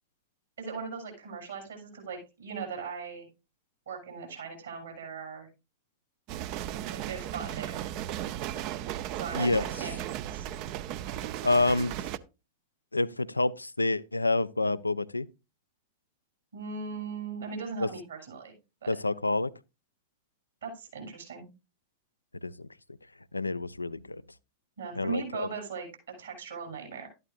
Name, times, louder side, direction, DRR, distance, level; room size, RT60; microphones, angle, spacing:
voice 1, 0.6-3.3 3.9-5.5 6.9-7.8 9.2-10.5 16.5-18.5 18.8-19.0 20.6-21.5 24.8-25.9 26.2-27.1, right 5 dB, 70° right, 7.0 m, -39 dB
sound 1, 6.3-12.2, right 12 dB, 45° right, 0.6 m, -36 dB
voice 2, 11.4-11.9 12.9-15.3 17.8-17.9 18.9-19.5 22.4-22.7 23.3-24.2 25.0-25.5, left 2 dB, 80° left, 0.4 m, -28 dB
13.0 x 11.0 x 2.5 m
figure-of-eight pair, 90°, 0 cm